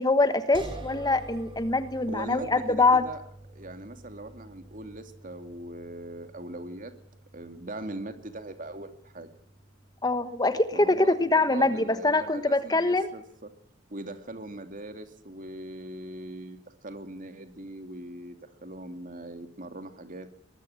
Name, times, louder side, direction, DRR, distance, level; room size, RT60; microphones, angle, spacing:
voice 1, 0.0-3.0 10.0-13.1, left 2 dB, 20° left, 11 dB, 1.3 m, -24 dB
sound 1, 0.5-13.6, right 2 dB, 25° right, 5.9 m, -49 dB
voice 2, 2.1-3.2 3.5-6.9 7.3-9.3 10.7-13.5 13.9-20.3, right 1 dB, 45° right, 8 dB, 2.7 m, -41 dB
23.0 x 20.5 x 9.0 m, 0.65 s
head